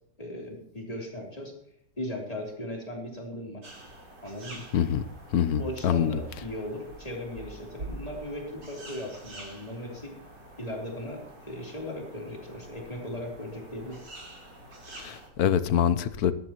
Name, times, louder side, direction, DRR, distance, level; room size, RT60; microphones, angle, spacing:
voice 1, 0.2-1.5 2.0-3.7 4.2-4.7 5.6-10.2 10.6-14.0, left 1 dB, 20° left, -1 dB, 3.6 m, -37 dB
sound 1, 3.6-15.3, right 2 dB, 80° right, 4.6 m, -46 dB
voice 2, 4.7-5.0 5.3-6.2 15.0-16.3, left 9 dB, 70° left, 13 dB, 1.2 m, -25 dB
19.0 x 13.5 x 3.0 m, 0.74 s
omnidirectional pair, 1.8 m